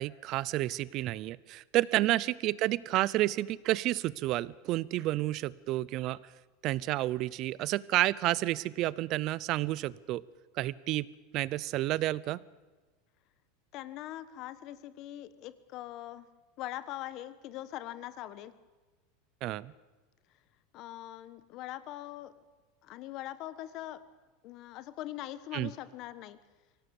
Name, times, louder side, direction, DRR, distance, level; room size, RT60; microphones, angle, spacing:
voice 1, 0.0-6.2 6.6-10.2 10.6-11.1 11.3-12.4 19.4-19.7 25.5-25.7, right 16 dB, 45° right, 21 dB, 0.7 m, -30 dB
voice 2, 13.7-16.3 16.6-18.5 20.7-22.3 22.8-24.0 24.4-26.4, left 14 dB, 45° left, 14 dB, 1.4 m, -42 dB
24.5 x 17.5 x 7.2 m, 1.3 s
supercardioid pair, 150°, 0 cm